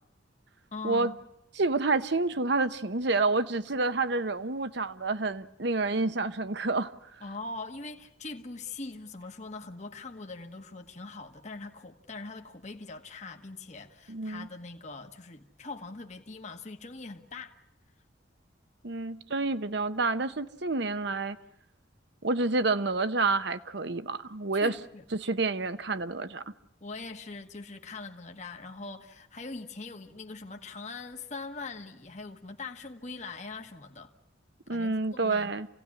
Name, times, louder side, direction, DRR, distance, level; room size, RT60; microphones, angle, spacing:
voice 1, 0.7-1.2 7.2-17.6 24.5-25.0 26.8-34.1 34.7-35.5, left 3 dB, 40° left, 1.3 m, -42 dB
voice 2, 1.6-6.9 14.1-14.5 18.8-21.4 22.2-24.7 25.1-26.4 34.7-35.7, right 3 dB, 60° right, 1.0 m, -28 dB
28.0 x 17.0 x 9.7 m
head